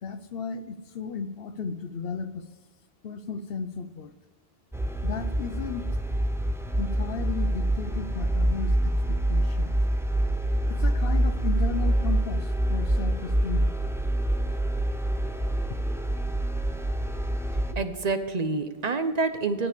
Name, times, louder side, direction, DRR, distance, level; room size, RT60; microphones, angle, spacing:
voice 1, 0.0-2.4 3.0-4.1 5.0-5.9 6.8-9.8 10.7-13.7, left 5 dB, 65° left, 11 dB, 0.9 m, -34 dB
sound 1, 4.7-17.7, right 1 dB, 5° right, 0.5 m, -26 dB
voice 2, 17.7-19.7, right 3 dB, 45° right, 9 dB, 0.9 m, -27 dB
10.0 x 9.5 x 5.0 m, 1.3 s
omnidirectional pair, 1.1 m